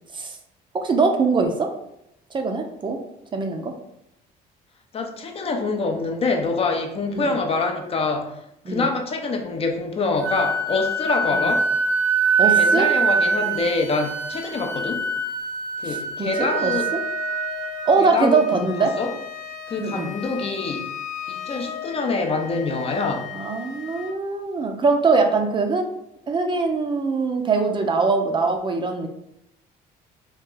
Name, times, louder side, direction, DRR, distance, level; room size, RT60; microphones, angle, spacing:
voice 1, 0.7-1.7 2.3-3.0 3.3-3.7 7.1-7.2 8.7-8.8 12.4-12.9 15.8-17.0 17.9-18.9 19.8-20.1 23.3-25.8 26.3-29.1, right 4 dB, 30° right, 4 dB, 0.4 m, -22 dB
voice 2, 4.9-8.4 8.7-11.7 12.4-15.0 15.8-16.9 18.0-18.4 18.8-19.1 19.7-20.9 21.3-23.3, left 3 dB, 35° left, 4 dB, 0.5 m, -25 dB
Wind instrument woodwind instrument, 10.2-18.0, right 4 dB, 85° right, 0.6 m, -23 dB
Wind instrument woodwind instrument 2, 16.3-24.2, left 10 dB, 90° left, 0.5 m, -35 dB
2.8 x 2.3 x 3.7 m, 0.79 s
cardioid pair, 110°, 17 cm